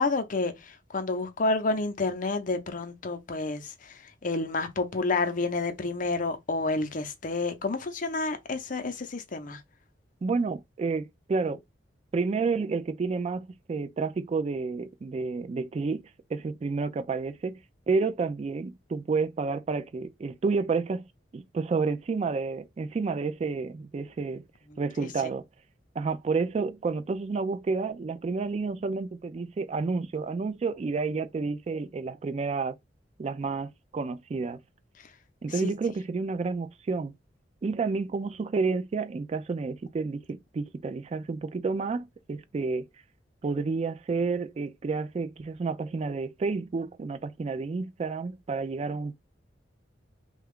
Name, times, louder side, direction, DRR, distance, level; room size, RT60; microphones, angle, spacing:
voice 1, 0.0-9.6 35.6-35.7, left 3 dB, 45° left, 0.6 m, -29 dB
voice 2, 10.2-11.6 12.1-17.6 17.9-21.1 21.3-24.4 24.8-25.4 26.0-32.7 33.2-34.6 35.4-37.1 37.6-42.9 43.4-49.1, right 4 dB, 35° right, 0.3 m, -30 dB
3.3 x 2.3 x 3.5 m
head